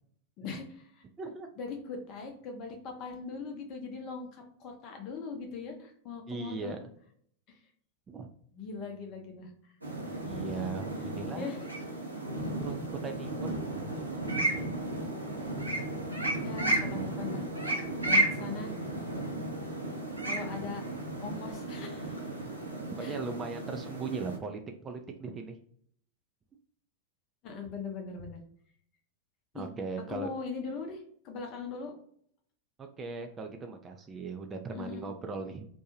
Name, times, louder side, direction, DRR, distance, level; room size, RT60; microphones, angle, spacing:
voice 1, 0.4-1.0 1.6-6.7 7.5-7.6 8.5-9.7 10.1-10.3 11.3-11.7 16.4-17.5 18.1-18.8 20.3-20.8 21.2-22.3 23.0-23.2 27.4-28.4 29.5-29.7 30.1-31.9 34.7-35.0, left 4 dB, 40° left, 3 dB, 0.6 m, -40 dB
voice 2, 1.2-1.5 6.3-6.8 8.1-8.3 10.1-11.6 12.6-13.6 13.9-14.1 23.0-25.6 29.5-30.3 32.8-35.7, right 4 dB, 20° right, 4 dB, 0.3 m, -38 dB
sound 1, 9.8-24.4, right 1 dB, 85° right, 0.6 m, -33 dB
2.6 x 2.2 x 2.8 m, 0.62 s
figure-of-eight pair, 90°, 0 cm